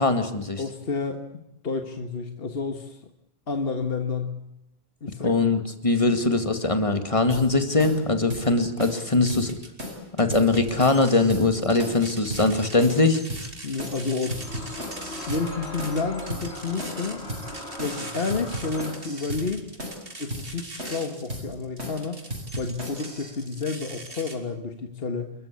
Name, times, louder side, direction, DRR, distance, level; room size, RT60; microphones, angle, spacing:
voice 1, 0.0-0.6 5.2-9.5 10.2-13.2, left 3 dB, 30° left, 7 dB, 2.3 m, -21 dB
voice 2, 0.6-3.1 3.5-4.4 5.0-5.4 6.1-6.2 13.6-14.5 15.3-17.2 17.8-19.7 20.2-22.2 22.6-25.3, left 4 dB, 60° left, 6 dB, 1.8 m, -30 dB
sound 1, 7.3-7.5 7.8-8.0 8.3-8.5 8.8-9.0 9.3-9.5 9.8-10.0 10.3-11.5 11.8-12.0 12.3-12.5 12.8-13.0 13.3-13.5 13.8-14.0 14.3-15.5 15.8-16.0 16.3-16.5 16.8-17.0 17.3-17.5 17.8-18.0 18.3-19.5 19.8-20.0 20.3-20.5 20.8-21.0 21.3-21.5 21.8-22.0 22.3-23.3, equal, 85° right, 7.3 m, -35 dB
sound 2, 8.8-9.8 10.2-24.4, right 2 dB, 60° right, 3.2 m, -42 dB
sound 3, 14.3-19.1, left 2 dB, 80° left, 3.6 m, -39 dB
29.0 x 14.0 x 8.5 m, 0.86 s
omnidirectional pair, 1.1 m